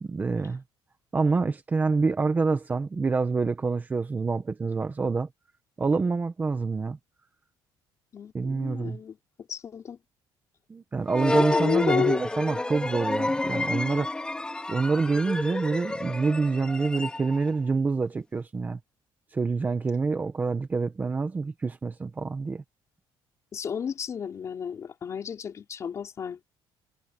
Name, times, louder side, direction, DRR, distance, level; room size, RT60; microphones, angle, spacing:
voice 1, 0.0-0.6 1.1-5.3 5.8-7.0 8.3-9.0 10.7-14.1 14.7-18.8 19.3-22.6, right 4 dB, 20° right, 1.2 m, -27 dB
voice 2, 8.1-9.2 9.5-10.0 11.4-12.2 23.5-26.4, left 7 dB, 35° left, 4.9 m, -31 dB
sound 1, 11.1-17.6, left 2 dB, 10° left, 4.2 m, -30 dB
cardioid pair, 165°, 9 cm